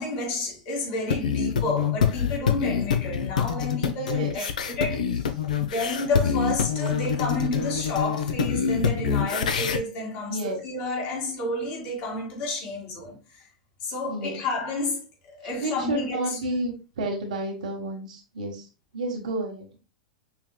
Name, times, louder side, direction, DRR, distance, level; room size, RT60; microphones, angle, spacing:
voice 1, 0.0-5.3 5.6-13.4 13.8-16.2 16.6-16.7, left 2 dB, 50° left, 2.1 m, -31 dB
sound 1, 1.1-9.8, left 7 dB, 80° left, 0.6 m, -26 dB
voice 2, 10.3-10.6 14.1-14.4 15.6-18.7 18.9-19.8, right 1 dB, 75° right, 1.5 m, -31 dB
5.7 x 3.2 x 2.2 m
hypercardioid pair, 100°, 4 cm